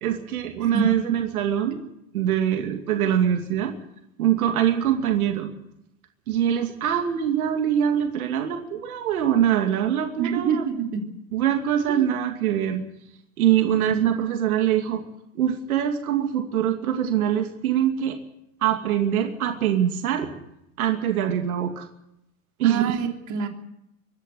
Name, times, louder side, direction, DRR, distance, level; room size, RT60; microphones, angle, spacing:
voice 1, 0.0-1.8 2.1-3.7 4.2-5.5 6.3-10.6 11.3-12.8 13.4-15.0 15.3-18.2 18.6-20.3 20.8-21.9 22.6-23.0, right 10 dB, 80° right, 5 dB, 2.6 m, -23 dB
voice 2, 10.2-11.0 12.0-12.1 22.6-23.5, right 6 dB, 40° right, 3 dB, 3.6 m, -26 dB
24.5 x 11.5 x 9.5 m, 0.81 s
hypercardioid pair, 105°, 43 cm